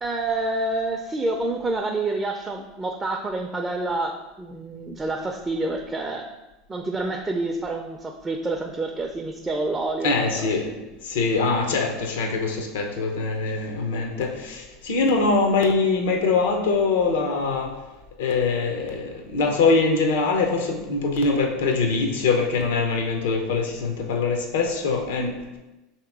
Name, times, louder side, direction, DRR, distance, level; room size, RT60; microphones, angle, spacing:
voice 1, 0.0-6.3 6.7-10.5, right 2 dB, 20° right, 3 dB, 0.4 m, -28 dB
voice 2, 10.0-17.8 18.2-25.3, left 4 dB, 80° left, 3 dB, 0.7 m, -23 dB
3.5 x 2.9 x 4.6 m, 1.0 s
hypercardioid pair, 95°, 0 cm